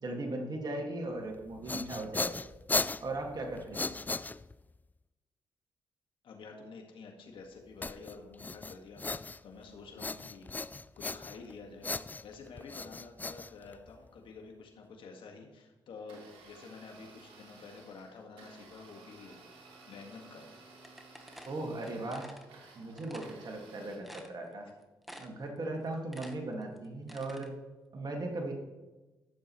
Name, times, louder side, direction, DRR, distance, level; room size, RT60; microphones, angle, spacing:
voice 1, 0.0-2.4 3.0-4.0 21.5-22.3 22.7-24.7 25.2-27.5 27.9-28.5, right 2 dB, 50° right, 1 dB, 2.0 m, -38 dB
sound 1, 1.4-4.8 7.8-9.6 10.0-11.5 11.8-14.1, left 3 dB, 20° left, 0.3 m, -37 dB
voice 2, 6.2-11.9 12.2-19.4 19.9-20.5, left 4 dB, 70° left, 2 dB, 1.7 m, -49 dB
Domestic sounds home sounds, 16.0-24.0, right 3 dB, 80° right, 2.0 m, -56 dB
sound 2, 20.8-22.5 23.0-23.4 23.7-23.8 24.0-24.7 25.0-25.5 25.8-27.5, equal, ahead, 1.2 m, -50 dB
12.5 x 7.0 x 3.1 m, 1.1 s
supercardioid pair, 60°, 9 cm